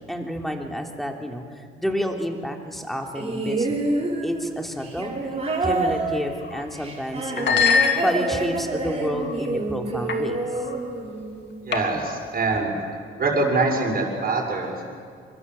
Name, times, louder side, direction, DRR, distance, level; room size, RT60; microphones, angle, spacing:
voice 1, 0.0-5.3 5.6-10.4, equal, ahead, 2 dB, 3.4 m, -30 dB
sound 1, 3.2-11.5 12.6-12.7, right 2 dB, 30° right, 5.3 m, -27 dB
sound 2, 6.4-6.7 7.3-8.5 9.1-9.5 10.1-10.3 10.6-10.8 11.7-12.2, left 5 dB, 60° left, 2.8 m, -23 dB
voice 2, 11.6-12.7 13.2-14.8, right 3 dB, 50° right, -1 dB, 6.4 m, -24 dB
25.0 x 23.0 x 7.8 m, 2.2 s
cardioid pair, 90°, 20 cm